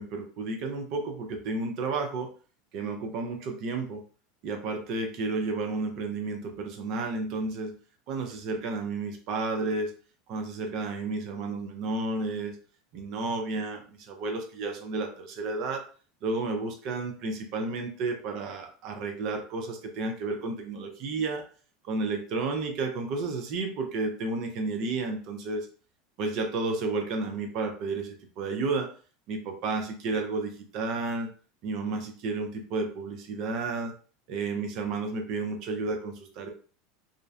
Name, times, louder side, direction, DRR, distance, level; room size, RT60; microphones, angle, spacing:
voice 1, 0.0-2.3 2.7-4.0 4.4-7.7 8.1-9.9 10.3-12.5 12.9-13.8 14.1-15.8 16.2-21.4 21.8-25.7 26.2-28.9 29.3-31.3 31.6-33.9 34.3-36.5, right 3 dB, 55° right, 4 dB, 0.5 m, -32 dB
2.5 x 2.1 x 2.4 m, 0.39 s
hypercardioid pair, 90°, 0 cm